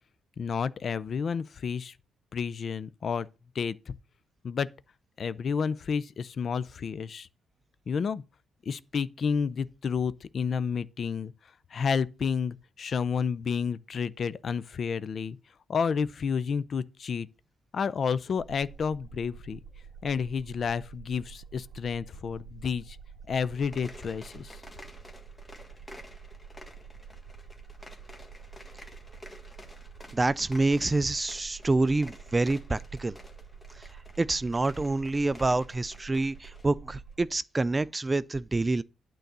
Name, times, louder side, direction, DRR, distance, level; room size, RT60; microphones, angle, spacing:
voice 1, 0.4-1.9 2.3-3.3 3.5-3.9 4.4-4.7 5.2-7.3 7.9-8.2 8.7-11.3 11.7-15.4 15.7-17.3 17.7-19.6 20.0-23.0 23.3-24.6, left 6 dB, 50° left, 0.5 m, -30 dB
sound 1, 18.4-37.3, right 6 dB, 55° right, 1.1 m, -48 dB
sound 2, 23.5-36.7, left 1 dB, 15° left, 1.6 m, -51 dB
voice 2, 30.1-33.2 33.8-33.9 34.2-38.8, right 2 dB, 20° right, 0.3 m, -27 dB
9.1 x 3.9 x 6.7 m
cardioid pair, 90°, 0 cm